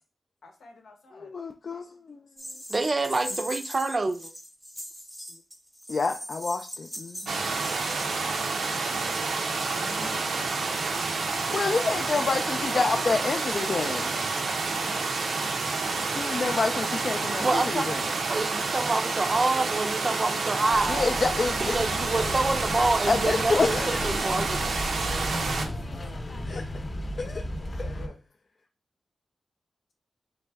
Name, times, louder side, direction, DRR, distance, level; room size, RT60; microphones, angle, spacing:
voice 1, 0.4-1.3 22.0-22.3 23.2-23.5 25.0-26.4 27.4-28.1, left 3 dB, 85° left, 0.9 m, -46 dB
voice 2, 1.1-2.2 5.9-7.5 9.7-10.2 11.3-14.2 16.2-18.0 20.9-21.8 23.1-24.2 26.5-26.6 27.2-27.4 27.8-27.9, left 4 dB, 55° left, 0.3 m, -28 dB
sound 1, 2.4-8.1, equal, 5° left, 0.7 m, -40 dB
voice 3, 2.7-4.3 17.4-17.9 18.3-21.2 21.6-24.8, right 3 dB, 40° right, 0.4 m, -27 dB
sound 2, 7.3-25.7, right 4 dB, 90° right, 0.6 m, -29 dB
sound 3, 20.7-28.1, left 1 dB, 40° left, 0.7 m, -34 dB
4.0 x 3.2 x 3.4 m
wide cardioid pair, 85°, 0 cm